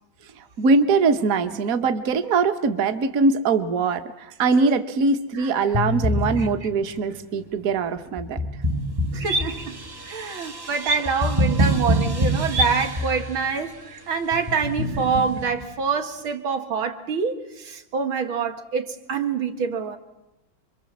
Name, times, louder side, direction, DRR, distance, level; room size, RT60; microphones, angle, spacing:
voice 1, 0.6-8.4, right 4 dB, 45° right, 1.6 m, -22 dB
sound 1, 5.7-6.9 8.2-13.5 14.3-15.6, equal, 20° right, 0.6 m, -26 dB
voice 2, 9.1-9.8 10.1-13.8 14.1-20.0, right 5 dB, 85° right, 2.7 m, -26 dB
sound 2, 9.2-15.5, right 1 dB, 70° right, 2.8 m, -33 dB
28.5 x 23.5 x 7.4 m
omnidirectional pair, 2.2 m